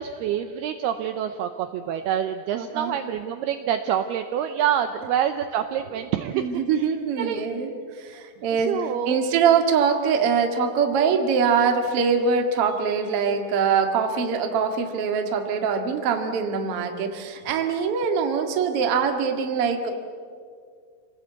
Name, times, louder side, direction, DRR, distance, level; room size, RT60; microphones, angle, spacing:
voice 1, 0.0-6.9 7.2-7.4 8.5-9.2, right 9 dB, 80° right, 7 dB, 2.4 m, -27 dB
voice 2, 2.5-2.9 6.3-7.7 8.0-8.8 9.1-19.9, right 6 dB, 50° right, 4 dB, 1.9 m, -23 dB
28.0 x 19.0 x 8.3 m, 2.1 s
omnidirectional pair, 5.3 m